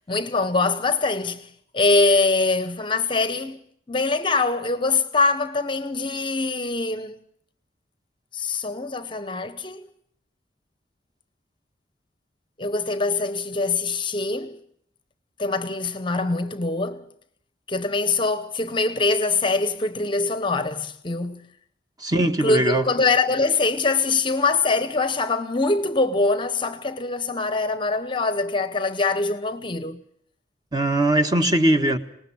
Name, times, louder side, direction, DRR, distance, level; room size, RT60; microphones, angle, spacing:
voice 1, 0.1-7.2 8.3-9.9 12.6-14.6 15.4-17.1 17.7-21.5 22.4-30.0, left 3 dB, 25° left, 0.8 m, -23 dB
voice 2, 22.0-22.8 30.7-32.0, right 1 dB, 20° right, 1.5 m, -20 dB
26.0 x 19.5 x 6.3 m
head